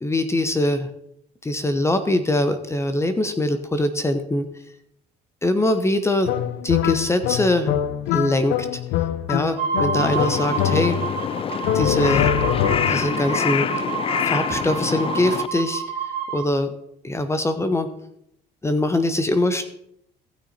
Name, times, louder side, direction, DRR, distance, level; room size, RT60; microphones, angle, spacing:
voice 1, 0.0-0.9 1.4-4.5 5.4-6.3 6.6-7.7 8.1-8.8 9.3-11.0 11.7-12.3 12.9-13.7 14.2-15.8 16.3-16.8 17.0-17.9 18.6-19.7, left 1 dB, 15° left, 10 dB, 0.9 m, -22 dB
sound 1, 6.2-11.2 11.6-13.2, left 11 dB, 90° left, 0.7 m, -24 dB
sound 2, 9.6-16.5, right 6 dB, 55° right, 2.1 m, -29 dB
Crow, 10.0-15.5, left 8 dB, 35° left, 0.4 m, -26 dB
15.5 x 6.3 x 4.2 m, 0.73 s
cardioid pair, 110°, 17 cm